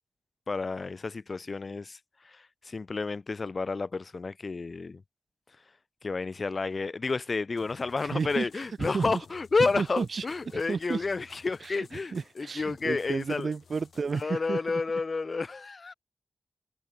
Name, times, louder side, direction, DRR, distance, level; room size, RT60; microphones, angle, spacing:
voice 1, 0.5-5.0 6.0-13.5 14.1-15.9, left 4 dB, 45° left, 0.3 m, -31 dB
sound 1, 7.6-14.2, left 6 dB, 90° left, 1.5 m, -56 dB
voice 2, 8.0-9.2 9.6-10.2 10.5-11.0 11.6-11.8 12.1-14.6, right 5 dB, 65° right, 0.4 m, -32 dB
wide cardioid pair, 110°, 0 cm